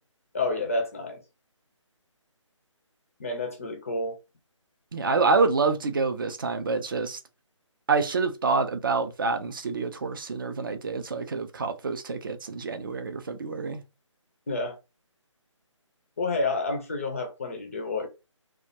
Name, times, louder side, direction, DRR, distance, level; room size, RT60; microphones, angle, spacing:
voice 1, 0.3-1.2 3.2-4.2 14.5-14.8 16.2-18.1, left 3 dB, 25° left, 0.4 m, -29 dB
voice 2, 4.9-7.2 7.9-13.8, right 4 dB, 45° right, 0.4 m, -27 dB
2.2 x 2.1 x 2.7 m
figure-of-eight pair, 155°, 16 cm